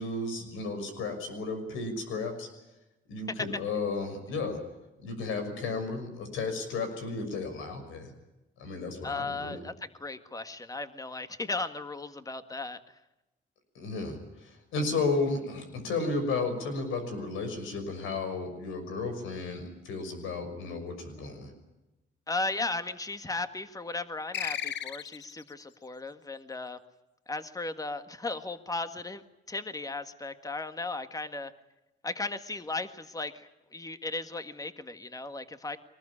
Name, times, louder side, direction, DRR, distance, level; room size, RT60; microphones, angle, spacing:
voice 1, 0.0-2.5 3.1-4.6 5.0-8.1 8.6-9.6 13.7-21.5, left 3 dB, 90° left, 7 dB, 6.2 m, -33 dB
voice 2, 9.0-12.8 22.3-26.8 27.3-29.2 29.5-31.5 32.0-35.8, left 3 dB, 15° left, 10 dB, 1.7 m, -36 dB
sound 1, 24.3-25.5, left 10 dB, 60° left, 0.8 m, -35 dB
23.0 x 19.5 x 10.0 m, 0.97 s
cardioid pair, 90°, 20 cm